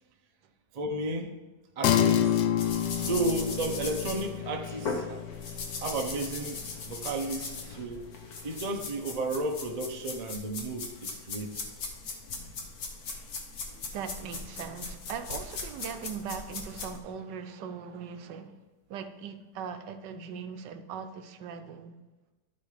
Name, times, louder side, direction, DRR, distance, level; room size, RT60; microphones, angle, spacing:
voice 1, 0.7-1.4 1.8-2.5 3.0-5.2 5.8-8.0 8.4-11.7, right 2 dB, 45° right, 0.5 m, -33 dB
sound 1, 1.8-11.6, left 10 dB, 80° left, 1.3 m, -32 dB
sound 2, 2.6-17.0, left 4 dB, 60° left, 1.6 m, -39 dB
voice 2, 13.9-18.6 18.9-22.0, right 6 dB, 75° right, 1.3 m, -40 dB
12.5 x 4.3 x 4.9 m
omnidirectional pair, 1.9 m